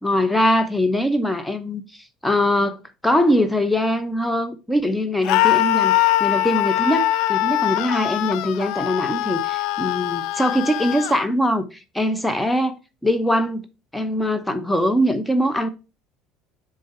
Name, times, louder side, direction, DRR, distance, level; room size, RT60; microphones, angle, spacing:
voice 1, 0.0-2.8 3.0-13.6 13.9-15.7, left 1 dB, 5° left, 0.8 m, -22 dB
Screaming, 5.2-11.2, left 15 dB, 60° left, 0.3 m, -22 dB
6.5 x 3.8 x 4.4 m
hypercardioid pair, 65°, 0 cm